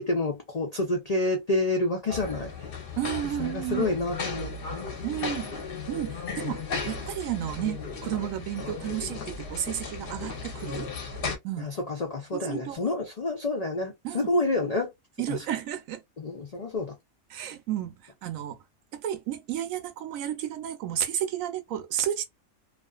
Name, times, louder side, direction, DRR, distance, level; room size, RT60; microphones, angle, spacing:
voice 1, 0.0-2.7 3.4-4.8 11.6-14.9 15.3-15.4 16.2-17.0, left 2 dB, 75° left, 0.3 m, -29 dB
sound 1, 2.1-11.4, left 4 dB, 50° left, 0.8 m, -35 dB
voice 2, 3.0-4.0 5.0-5.5 5.9-10.9 11.4-11.7 12.3-12.8 14.0-14.3 15.2-16.0 17.3-18.6 18.9-22.2, right 11 dB, 75° right, 0.9 m, -32 dB
2.4 x 2.4 x 2.2 m
omnidirectional pair, 1.5 m